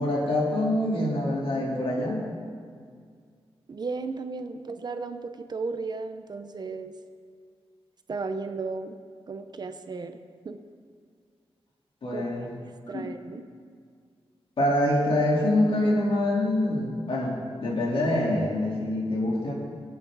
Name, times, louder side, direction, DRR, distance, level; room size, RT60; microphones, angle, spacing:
voice 1, 0.0-2.2 12.0-12.5 12.9-13.0 14.6-19.5, left 1 dB, 60° left, -4 dB, 3.6 m, -25 dB
voice 2, 3.7-6.9 8.1-9.0 9.3-10.2 10.4-10.6 12.1-12.5 12.9-13.4, right 4 dB, 45° right, 8 dB, 0.7 m, -34 dB
24.5 x 8.6 x 4.0 m, 2.1 s
wide cardioid pair, 160°, 10 cm